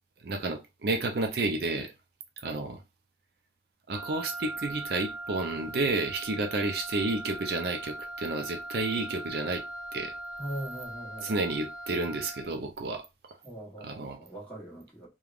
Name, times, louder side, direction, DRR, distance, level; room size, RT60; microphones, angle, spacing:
voice 1, 0.2-1.9 2.4-2.8 3.9-9.6 9.9-10.1 11.2-13.0 13.8-14.2, right 2 dB, 55° right, 0.4 m, -31 dB
Wind instrument woodwind instrument, 3.9-12.6, right 1 dB, 90° right, 0.9 m, -40 dB
voice 2, 10.4-11.4 13.4-15.1, right 1 dB, 5° left, 1.0 m, -41 dB
3.3 x 2.2 x 2.4 m
head